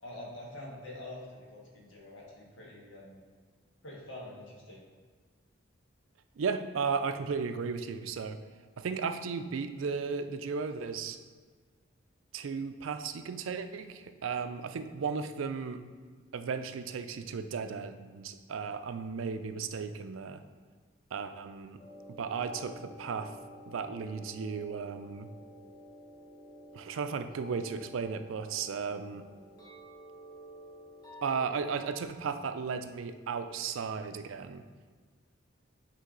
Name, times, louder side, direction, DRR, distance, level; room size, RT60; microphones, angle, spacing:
voice 1, 0.0-3.2 3.8-4.8, left 1 dB, 75° left, -3 dB, 1.6 m, -46 dB
voice 2, 6.4-8.4 8.8-11.2 12.3-15.8 16.3-20.4 21.1-21.8 22.2-23.3 23.7-25.3 26.7-29.3 31.2-34.6, right 5 dB, 85° right, 9 dB, 0.4 m, -35 dB
sound 1, 21.8-32.1, equal, 20° left, 1.1 m, -50 dB
8.3 x 3.4 x 3.8 m, 1.5 s
head